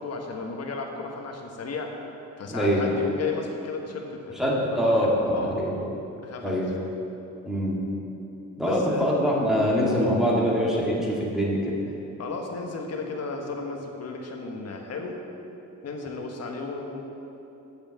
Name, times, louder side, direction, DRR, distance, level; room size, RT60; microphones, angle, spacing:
voice 1, 0.0-1.9 2.4-4.4 4.7-4.9 5.3-5.5 6.2-6.6 8.6-9.2 12.2-15.2 15.8-17.0, left 4 dB, 55° left, 2 dB, 1.4 m, -34 dB
voice 2, 2.5-2.8 4.4-5.7 6.4-6.7 7.5-7.8 8.6-11.8, equal, ahead, -6 dB, 2.1 m, -24 dB
8.1 x 6.8 x 7.1 m, 2.9 s
cardioid pair, 90°, 30 cm